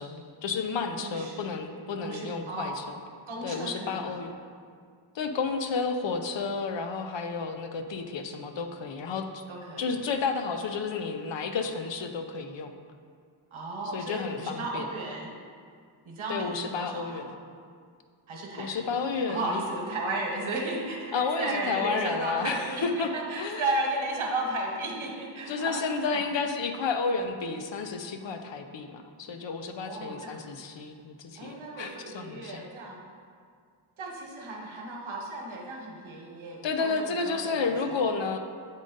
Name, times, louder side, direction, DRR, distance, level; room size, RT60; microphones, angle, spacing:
voice 1, 0.0-3.0 3.4-4.3 5.1-9.4 9.8-12.7 13.9-14.9 16.3-17.3 18.6-19.6 21.1-23.1 23.4-23.6 25.5-32.6 36.6-38.4, left 4 dB, 65° left, 6 dB, 0.6 m, -31 dB
voice 2, 0.9-1.4 2.0-2.8 3.3-4.2 9.5-9.9 13.5-15.3 16.0-17.3 18.3-18.9 19.3-26.2 29.8-30.4 31.4-33.0 34.0-38.1, right 2 dB, 75° right, 0 dB, 1.2 m, -34 dB
8.8 x 3.7 x 3.9 m, 2.1 s
wide cardioid pair, 75°, 48 cm